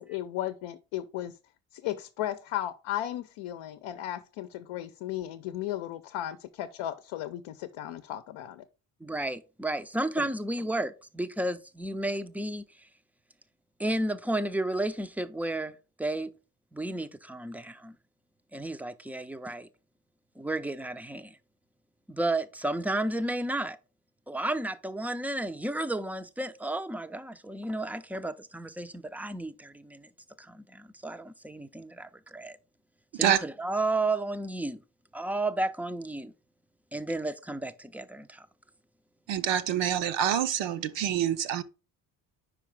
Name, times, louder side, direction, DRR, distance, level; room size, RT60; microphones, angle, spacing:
voice 1, 0.0-1.4 1.7-8.6 10.2-10.3, left 12 dB, 75° left, 0.7 m, -35 dB
voice 2, 9.0-12.6 13.8-16.3 16.7-17.9 18.5-19.7 20.4-21.4 22.1-23.8 24.3-30.1 30.4-32.6 33.1-34.8 35.1-36.3 36.9-38.5, right 2 dB, 5° right, 0.4 m, -32 dB
voice 3, 39.3-41.6, right 10 dB, 65° right, 0.8 m, -26 dB
5.1 x 4.9 x 4.6 m
supercardioid pair, 75°, 47 cm